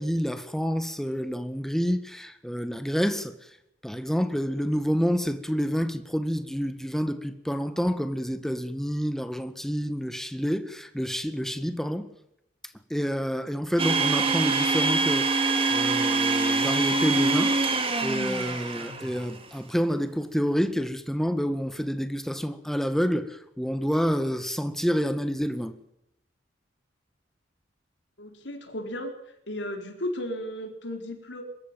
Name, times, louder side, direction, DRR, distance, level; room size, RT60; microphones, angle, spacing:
voice 1, 0.0-3.5 3.8-12.1 12.9-17.5 18.0-25.7, equal, ahead, 1.7 m, -28 dB
Domestic sounds home sounds, 13.8-19.3, right 3 dB, 30° right, 3.3 m, -24 dB
voice 2, 28.2-29.1 29.5-31.4, left 1 dB, 75° left, 4.4 m, -34 dB
23.5 x 14.0 x 9.2 m
head